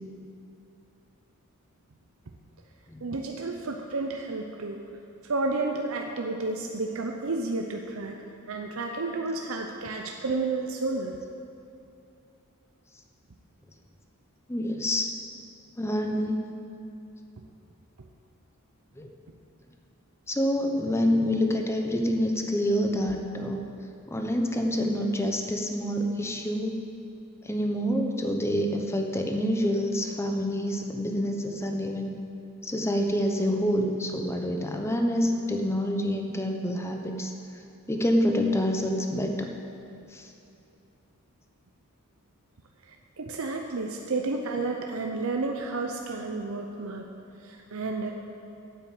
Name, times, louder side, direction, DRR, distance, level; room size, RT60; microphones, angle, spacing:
voice 1, 3.0-4.8 5.2-8.2 8.5-11.1 43.2-47.1 47.4-48.1, right 3 dB, 70° right, 2 dB, 0.7 m, -31 dB
voice 2, 14.5-15.1 15.8-16.4 19.0-19.1 20.3-23.6 24.1-26.8 27.4-32.1 32.6-37.3 37.9-39.5 40.1-40.3, equal, 10° left, 3 dB, 0.8 m, -27 dB
9.3 x 8.5 x 7.6 m, 2.7 s
head